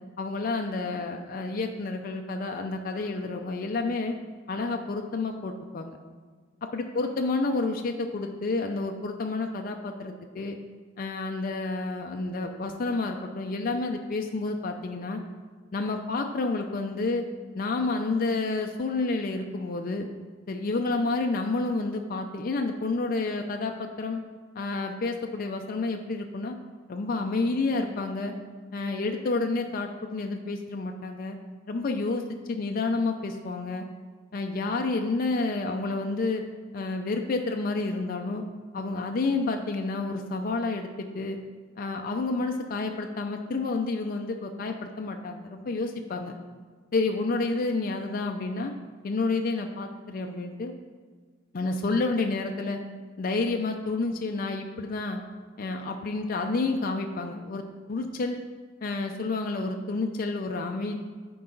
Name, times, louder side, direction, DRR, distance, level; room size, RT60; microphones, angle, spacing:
voice 1, 0.2-4.1 4.5-6.0 6.7-10.6 11.0-15.2 15.7-17.2 17.6-20.1 20.5-24.2 24.6-26.6 26.9-28.3 28.7-31.4 31.7-33.9 34.3-36.4 36.7-38.4 38.7-41.4 41.8-46.4 46.9-48.7 49.0-50.7 51.5-52.8 53.2-55.2 55.6-57.6 57.9-58.4 58.8-61.0, left 3 dB, 45° left, 4 dB, 0.4 m, -29 dB
9.7 x 4.7 x 3.8 m, 1.5 s
head